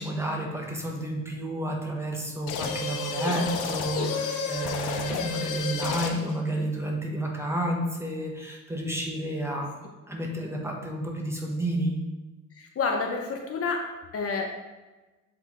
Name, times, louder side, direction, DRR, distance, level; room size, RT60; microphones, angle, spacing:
voice 1, 0.0-9.8 10.1-12.0, right 1 dB, 10° right, 0 dB, 1.3 m, -31 dB
sound 1, 2.5-6.4, left 4 dB, 85° left, 0.8 m, -31 dB
voice 2, 12.5-13.8 14.1-14.5, left 4 dB, 50° left, 2 dB, 1.0 m, -29 dB
8.0 x 3.6 x 3.6 m, 1.2 s
cardioid pair, 90°, 30 cm